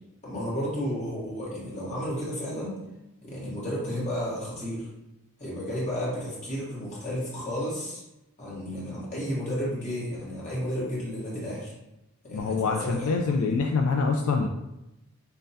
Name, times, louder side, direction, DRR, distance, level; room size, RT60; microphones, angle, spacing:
voice 1, 0.2-2.8 3.2-4.9 5.4-8.0 8.4-11.7 12.2-13.6, equal, 35° left, -6 dB, 1.3 m, -32 dB
voice 2, 12.3-14.5, left 4 dB, 70° left, 2 dB, 0.3 m, -25 dB
5.4 x 2.2 x 2.7 m, 0.91 s
head